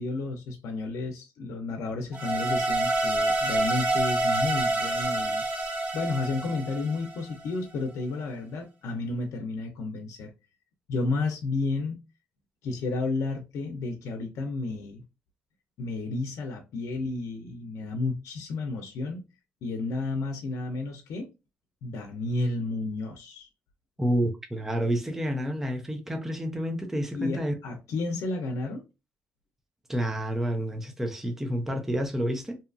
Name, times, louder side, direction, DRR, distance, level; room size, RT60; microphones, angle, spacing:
voice 1, 0.0-5.4 5.9-10.3 10.9-12.0 12.6-15.0 15.8-19.2 19.6-21.3 21.8-23.5 27.1-28.8, left 3 dB, 80° left, 0.5 m, -32 dB
sound 1, 2.1-7.3, right 2 dB, 30° right, 0.9 m, -27 dB
voice 2, 24.0-27.5 29.9-32.6, equal, 5° right, 0.4 m, -29 dB
2.7 x 2.3 x 2.4 m
cardioid pair, 150°, 5 cm